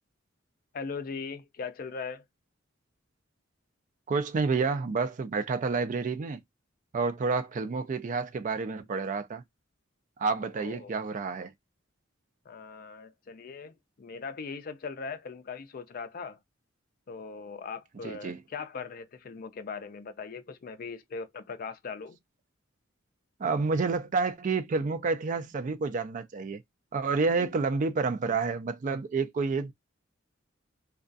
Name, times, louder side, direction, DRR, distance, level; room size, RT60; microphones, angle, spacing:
voice 1, 0.7-2.2 10.6-11.0 12.5-16.4 17.1-22.2 27.4-27.5, left 5 dB, 45° left, 0.4 m, -40 dB
voice 2, 4.1-6.4 6.9-9.4 10.2-11.5 18.0-18.4 23.4-26.6 26.9-29.7, right 4 dB, 40° right, 0.3 m, -29 dB
2.3 x 2.3 x 2.5 m
head